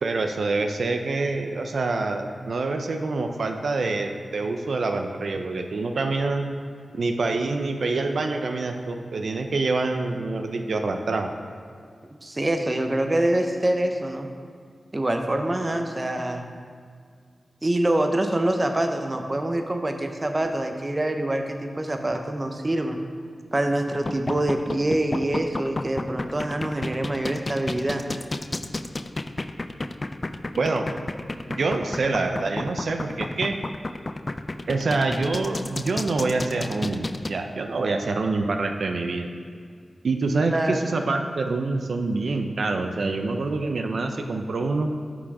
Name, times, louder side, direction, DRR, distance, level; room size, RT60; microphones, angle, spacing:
voice 1, 0.0-6.5 6.9-11.3 30.6-30.9 31.5-33.6 34.7-39.3 40.0-44.9, right 3 dB, 75° right, 5 dB, 0.4 m, -26 dB
voice 2, 12.2-14.3 14.9-16.4 17.6-23.0 23.5-28.1 40.5-40.9, right 1 dB, 30° right, 5 dB, 0.6 m, -25 dB
sound 1, 23.9-37.3, left 2 dB, 35° left, 0.3 m, -31 dB
6.0 x 6.0 x 4.8 m, 2.1 s
wide cardioid pair, 70°, 0 cm